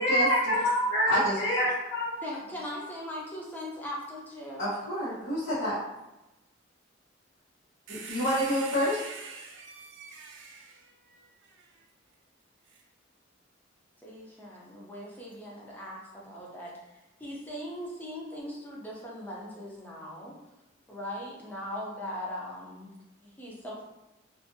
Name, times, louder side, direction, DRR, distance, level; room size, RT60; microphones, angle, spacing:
voice 1, 0.0-2.2, equal, 55° left, -9 dB, 0.7 m, -26 dB
voice 2, 1.0-1.3 4.6-5.8 7.9-9.0, equal, 80° left, -13 dB, 1.1 m, -28 dB
voice 3, 2.2-4.7 14.0-20.4 20.9-23.0 23.4-23.8, left 1 dB, 10° left, -4 dB, 0.6 m, -40 dB
sound 1, 7.9-11.7 12.7-12.8, right 5 dB, 70° right, 0.4 m, -44 dB
2.5 x 2.5 x 2.6 m, 0.97 s
head